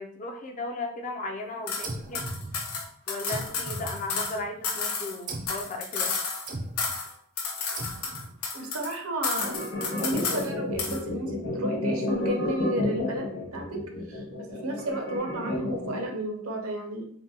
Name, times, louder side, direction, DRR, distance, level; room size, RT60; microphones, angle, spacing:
voice 1, 0.0-2.3 3.1-6.2, left 2 dB, 35° left, 4 dB, 0.4 m, -36 dB
sound 1, 1.7-1.9 2.1-4.4 4.6-6.5 6.8-7.1 7.4-8.9 9.2-10.5 10.8-11.0, left 5 dB, 90° left, 0.8 m, -31 dB
sound 2, 1.8-2.9 3.3-4.6 5.3-5.7 6.5-7.0 7.8-8.4, right 2 dB, 40° right, 0.4 m, -38 dB
voice 2, 8.5-9.6 10.0-13.3 13.5-13.8 14.1-17.0, right 1 dB, 70° right, 2 dB, 0.7 m, -32 dB
sound 3, 9.4-16.1, left 2 dB, 55° left, 1.1 m, -31 dB
3.6 x 2.1 x 2.7 m, 0.64 s
head